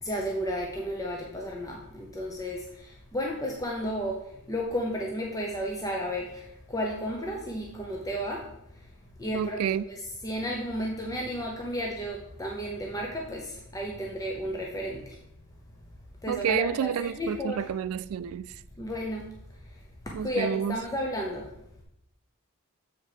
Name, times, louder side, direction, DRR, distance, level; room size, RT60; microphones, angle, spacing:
voice 1, 0.0-8.9 9.2-15.2 16.2-17.7 18.8-19.3 19.6-21.5, equal, 15° left, 0.7 m, -33 dB
voice 2, 9.3-9.8 16.3-18.6 20.1-20.8, right 8 dB, 75° right, 0.3 m, -29 dB
7.3 x 4.6 x 5.0 m
head